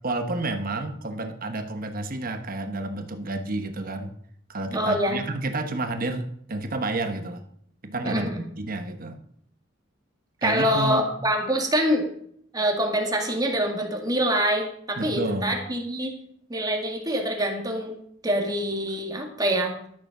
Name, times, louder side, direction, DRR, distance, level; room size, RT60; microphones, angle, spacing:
voice 1, 0.0-4.1 4.5-7.4 7.8-8.3 8.6-9.2 10.4-11.0 15.0-15.6, right 2 dB, 50° right, 7 dB, 1.1 m, -30 dB
voice 2, 4.7-5.2 8.0-8.4 10.4-12.0 12.5-16.1 16.5-18.0 18.2-19.7, equal, 20° right, 1 dB, 2.1 m, -25 dB
12.5 x 6.8 x 6.0 m, 0.65 s
head